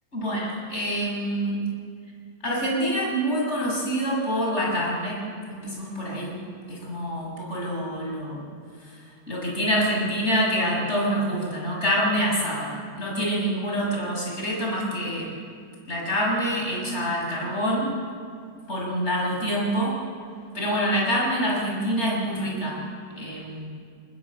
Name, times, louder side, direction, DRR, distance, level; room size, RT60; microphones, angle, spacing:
voice 1, 0.1-1.6 2.4-5.2 5.5-6.4 6.7-8.5 9.3-15.3 15.9-17.9 18.7-19.9 20.5-22.8 23.2-23.7, equal, 20° left, -3 dB, 7.5 m, -26 dB
28.5 x 19.5 x 8.1 m, 2.2 s
omnidirectional pair, 3.3 m